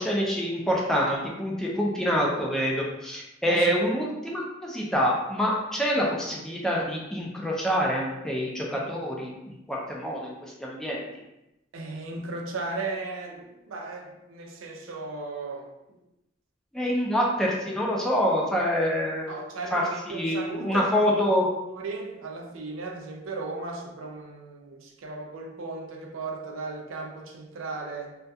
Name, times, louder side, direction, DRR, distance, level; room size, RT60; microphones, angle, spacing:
voice 1, 0.0-9.3 9.7-10.3 10.6-11.0 16.7-19.3 19.7-21.5, equal, 5° left, -3 dB, 0.4 m, -26 dB
voice 2, 11.7-16.0 19.3-21.2 21.7-28.2, right 3 dB, 85° right, 1 dB, 0.4 m, -36 dB
2.3 x 2.2 x 2.6 m, 0.92 s
head